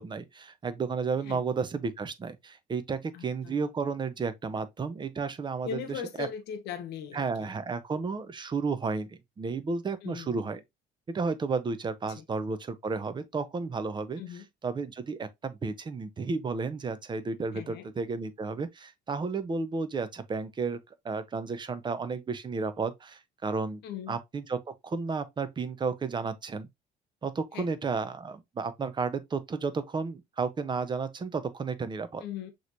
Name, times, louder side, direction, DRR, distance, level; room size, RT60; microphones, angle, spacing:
voice 1, 0.0-6.3 7.1-10.6 11.1-14.2 14.6-20.8 21.0-23.8 24.1-26.7 27.2-32.2, right 4 dB, 25° right, 0.7 m, -32 dB
voice 2, 3.1-3.6 5.6-7.5 10.0-10.4 12.2-12.3 14.2-14.4 17.5-17.9 23.8-24.2 27.5-27.7 32.2-32.5, left 8 dB, 80° left, 1.1 m, -39 dB
6.3 x 3.1 x 2.5 m
cardioid pair, 110°, 17 cm